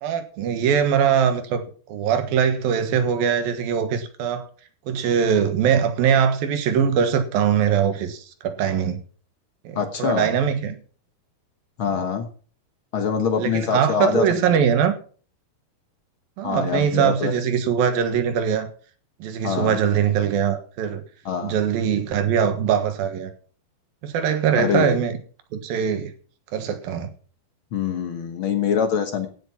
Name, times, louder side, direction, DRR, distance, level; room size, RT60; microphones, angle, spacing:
voice 1, 0.0-1.6 1.9-4.5 4.9-9.0 9.6-10.8 11.8-11.9 13.4-14.9 16.4-18.7 19.2-21.0 21.4-23.3 24.0-25.2 25.5-26.1 26.5-27.1, right 8 dB, 70° right, 3.2 m, -22 dB
voice 2, 9.7-10.3 11.8-12.3 12.9-14.6 16.4-17.4 19.4-19.8 21.2-21.6 24.5-25.0 27.7-29.3, left 7 dB, 85° left, 1.1 m, -24 dB
16.0 x 7.8 x 5.8 m
omnidirectional pair, 4.4 m